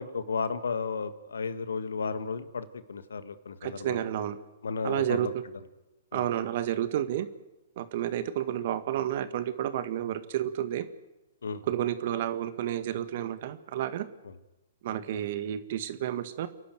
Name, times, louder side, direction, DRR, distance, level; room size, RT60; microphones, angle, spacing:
voice 1, 0.0-4.0 4.6-5.3 6.1-6.3 11.4-11.6, left 5 dB, 80° left, 12 dB, 1.7 m, -33 dB
voice 2, 3.6-4.4 4.8-5.3 6.1-7.3 7.8-10.9 11.6-14.1 14.8-16.5, right 11 dB, 55° right, 12 dB, 1.8 m, -30 dB
29.5 x 11.5 x 9.3 m, 0.99 s
hypercardioid pair, 130°, 0 cm